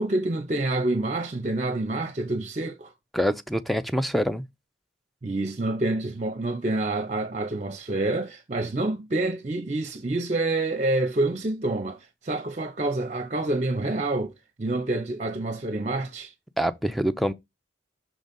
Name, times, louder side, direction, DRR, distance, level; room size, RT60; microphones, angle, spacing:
voice 1, 0.0-2.9 5.2-14.3 14.6-16.3, right 2 dB, 40° right, 0.7 m, -27 dB
voice 2, 3.1-4.4 16.6-17.3, equal, ahead, 0.4 m, -25 dB
6.1 x 3.9 x 5.2 m
head